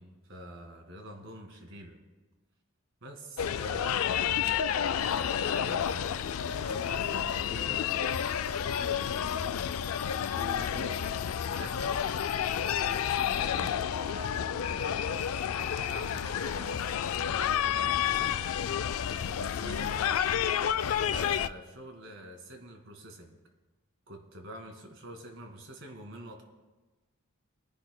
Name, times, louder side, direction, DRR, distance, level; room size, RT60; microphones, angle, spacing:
voice 1, 0.3-2.0 3.0-4.5 4.8-7.9 8.8-11.1 11.4-12.0 12.5-13.7 14.1-15.1 15.5-18.3 19.6-20.2 21.1-23.4 24.1-26.4, right 1 dB, 55° right, 3 dB, 1.9 m, -46 dB
sound 1, 3.4-21.5, left 9 dB, 70° left, 0.4 m, -30 dB
22.5 x 10.5 x 2.2 m, 1.2 s
head